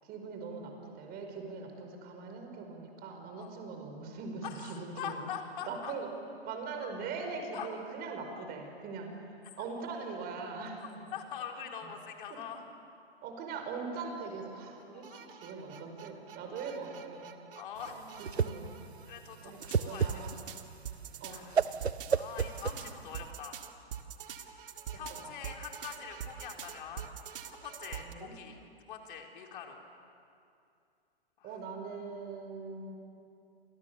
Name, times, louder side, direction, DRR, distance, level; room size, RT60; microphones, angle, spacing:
voice 1, 0.0-5.2 5.6-6.1 6.4-10.8 12.3-12.4 13.2-17.4 17.9-18.7 19.4-20.3 21.2-21.5 22.3-22.8 28.0-28.3 31.4-33.0, right 4 dB, 30° right, 4 dB, 5.2 m, -41 dB
voice 2, 4.4-5.9 7.5-7.7 9.6-9.7 11.1-12.6 14.9-15.5 17.6-18.1 19.1-20.3 21.2-21.6 22.1-23.6 24.3-27.1 27.5-28.6 28.9-29.8 31.4-31.6, left 8 dB, 55° left, 2 dB, 4.2 m, -44 dB
sound 1, 14.8-19.3 19.6-28.1, right 8 dB, 60° right, 2.0 m, -45 dB
Whoosh swoosh swish, 17.8-23.3, right 6 dB, 85° right, 0.8 m, -33 dB
29.5 x 26.5 x 7.1 m, 2.5 s
figure-of-eight pair, 110°, 31 cm